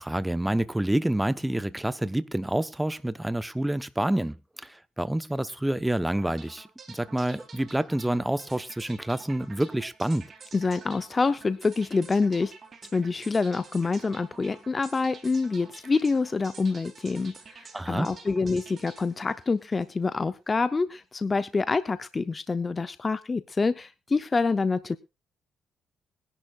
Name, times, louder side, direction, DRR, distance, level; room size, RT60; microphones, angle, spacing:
voice 1, 0.0-10.3 17.7-18.1, right 1 dB, 10° right, 14 dB, 0.9 m, -28 dB
sound 1, 6.2-20.3, right 5 dB, 45° right, 3.6 m, -49 dB
voice 2, 10.5-12.5 12.9-25.0, left 4 dB, 30° left, 13 dB, 0.6 m, -26 dB
22.0 x 11.0 x 2.4 m, 0.26 s
cardioid pair, 90°, 0 cm